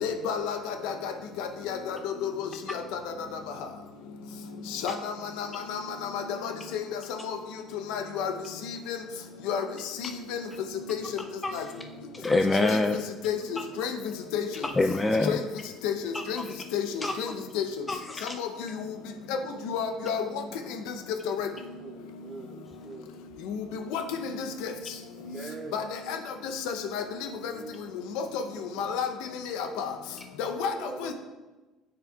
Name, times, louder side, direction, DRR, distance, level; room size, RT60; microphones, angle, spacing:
voice 1, 0.0-1.1 1.4-2.3 2.9-3.0 4.8-5.1 5.4-5.8 6.1-6.8 7.2-7.4 7.9-8.3 8.9-9.0 9.5-9.7 11.5-11.6 12.6-12.8 13.2-13.3 13.8-13.9 14.3-14.4 15.3-15.4 15.8-15.9 16.3-16.4 16.7-17.3 17.5-17.6 18.4-18.5 19.7-20.2 21.3-21.5 23.5-23.6 23.9-24.0 25.7-26.2 26.7-27.0 27.4-27.5 28.2-28.4 28.8-29.1 29.8-29.9 30.4-30.7 31.0-31.1, left 7 dB, 85° left, 7 dB, 0.6 m, -30 dB
voice 2, 11.4-11.7 12.1-13.0 13.6-13.7 14.6-15.4 16.1-16.6 17.0-17.2 17.9-18.4, left 2 dB, 15° left, 6 dB, 0.3 m, -26 dB
voice 3, 21.8-23.2 23.5-23.7 25.1-25.8 27.5-27.9 28.6-28.9 30.7-31.1, right 2 dB, 25° right, -4 dB, 2.3 m, -43 dB
9.8 x 6.6 x 2.3 m, 1.2 s
cardioid pair, 115°, 0 cm